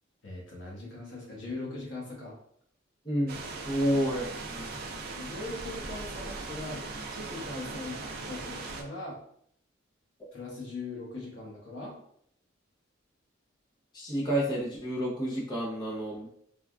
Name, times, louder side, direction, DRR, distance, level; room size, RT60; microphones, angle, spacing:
voice 1, 0.2-2.3 5.1-9.2 10.3-11.9, left 2 dB, 75° left, -3 dB, 1.0 m, -40 dB
voice 2, 3.1-4.7 13.9-16.3, equal, 20° left, -6 dB, 0.6 m, -30 dB
sound 1, 3.3-8.8, right 3 dB, 50° right, 0.4 m, -39 dB
3.3 x 2.3 x 2.3 m, 0.65 s
head